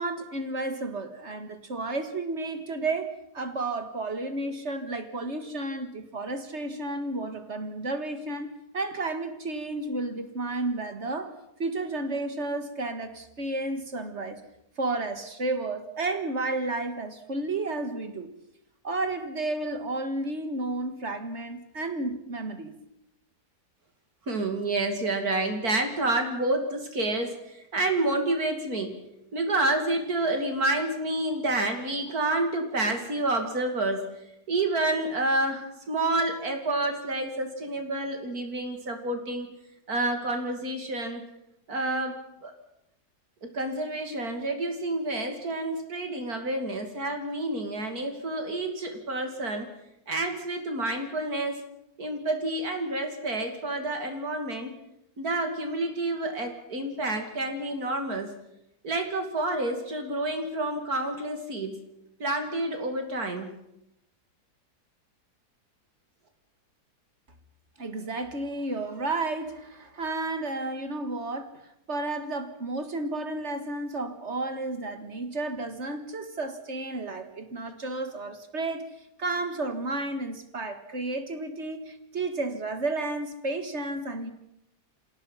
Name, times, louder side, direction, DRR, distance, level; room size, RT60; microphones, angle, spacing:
voice 1, 0.0-14.4 14.8-18.3 18.8-22.8 67.8-71.5 71.9-78.9 79.2-84.3, right 2 dB, 45° right, 8 dB, 2.0 m, -32 dB
voice 2, 24.3-29.0 29.3-34.1 34.5-39.5 39.9-41.2 41.7-42.5 43.5-49.7 50.1-51.5 52.0-54.7 55.2-58.3 58.8-61.8 62.2-63.5, right 2 dB, 65° right, 5 dB, 3.1 m, -29 dB
27.0 x 17.5 x 5.7 m, 0.82 s
omnidirectional pair, 1.7 m